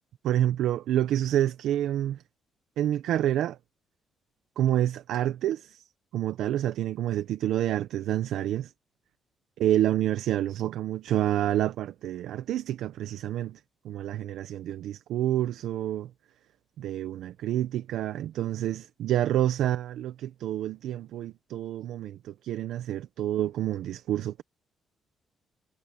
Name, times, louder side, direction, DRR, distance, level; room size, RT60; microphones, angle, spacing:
voice 1, 0.2-2.2 2.8-3.6 4.6-5.8 6.1-8.7 9.6-13.6 13.8-16.1 16.8-24.4, right 12 dB, 80° right, 0.8 m, -28 dB
cardioid pair, 90°, 0 cm